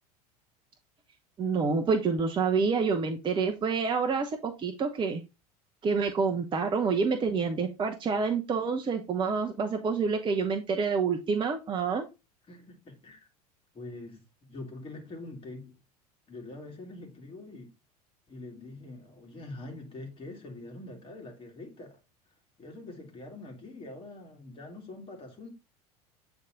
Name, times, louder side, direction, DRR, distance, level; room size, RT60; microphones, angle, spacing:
voice 1, 1.4-5.2 5.8-12.1, right 5 dB, 25° right, 0.8 m, -28 dB
voice 2, 12.5-13.3 13.7-15.8 16.3-17.7 18.3-22.0 22.6-25.5, left 2 dB, 25° left, 2.3 m, -44 dB
8.2 x 3.5 x 3.8 m
figure-of-eight pair, 75°, 20 cm